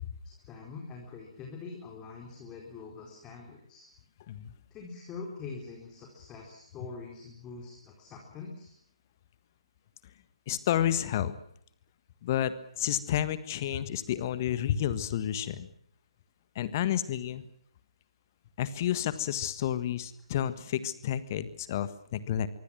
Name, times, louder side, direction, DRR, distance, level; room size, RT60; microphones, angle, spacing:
voice 1, 0.2-3.9 4.7-8.7, left 4 dB, 15° left, 0 dB, 4.3 m, -44 dB
voice 2, 10.5-11.4 12.2-15.7 16.6-17.5 18.6-22.5, left 11 dB, 30° left, 14 dB, 1.6 m, -30 dB
25.0 x 24.5 x 6.2 m, 0.65 s
figure-of-eight pair, 140°, 3 cm